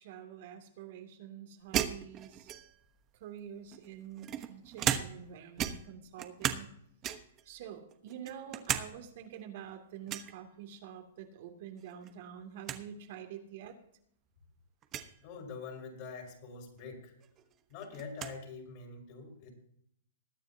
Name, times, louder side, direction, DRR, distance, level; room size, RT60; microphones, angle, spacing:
voice 1, 0.0-2.5 3.2-6.7 7.5-13.7, right 9 dB, 55° right, 4 dB, 2.6 m, -47 dB
sound 1, 1.7-2.9 3.7-5.3 5.6-6.7 7.0-7.4 7.9-8.9 9.2-9.3 10.1-10.3 11.8-12.1 12.4-12.5 12.6-12.8 13.6-13.7 14.8-15.1 16.8-16.9 17.2-18.4, right 10 dB, 30° right, 1.1 m, -35 dB
voice 2, 15.2-17.1 17.7-19.5, left 4 dB, 45° left, 1 dB, 5.2 m, -45 dB
21.0 x 9.2 x 2.8 m, 0.70 s
hypercardioid pair, 135°, 0 cm